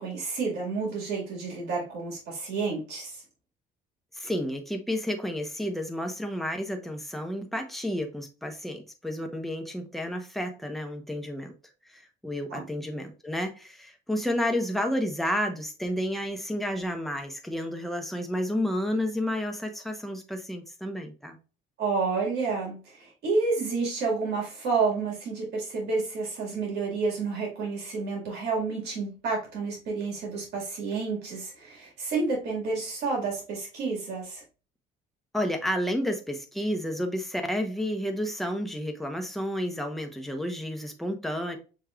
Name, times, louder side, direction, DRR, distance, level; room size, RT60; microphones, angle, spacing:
voice 1, 0.0-3.2 12.5-12.6 21.8-34.4, right 4 dB, 75° right, 2.0 m, -30 dB
voice 2, 4.1-11.5 11.9-21.4 35.3-41.6, equal, ahead, 0.9 m, -31 dB
6.4 x 3.1 x 2.4 m
cardioid pair, 110°, 17 cm